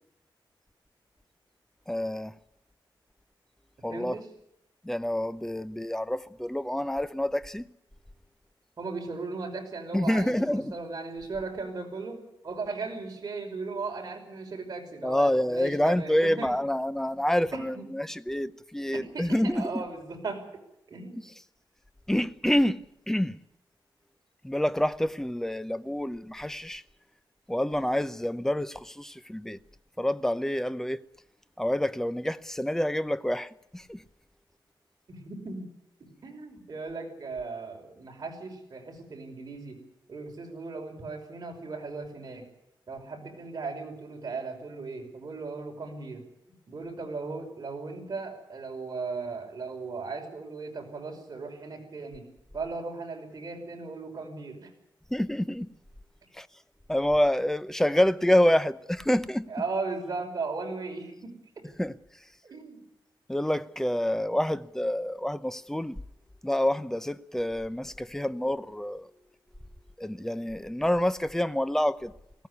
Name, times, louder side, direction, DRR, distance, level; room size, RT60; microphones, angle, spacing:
voice 1, 1.9-2.3 3.8-4.2 4.8-7.7 9.9-10.8 15.0-19.8 22.1-22.8 23.1-23.4 24.4-26.8 27.5-29.6 30.0-31.0 31.6-34.0 55.1-55.7 56.3-56.5 56.9-59.5 61.8-61.9 63.3-66.0 66.4-69.1 70.0-72.1, left 1 dB, 5° left, 0.7 m, -27 dB
voice 2, 3.9-4.3 8.8-12.2 12.4-16.5 17.5-17.9 19.1-20.5 20.9-21.2 35.1-35.7 36.2-39.8 40.1-42.4 42.9-46.2 46.7-52.2 52.5-54.7 59.5-61.7 62.4-62.8, right 4 dB, 45° right, 5.6 m, -37 dB
19.0 x 17.0 x 9.8 m
wide cardioid pair, 120°, 8 cm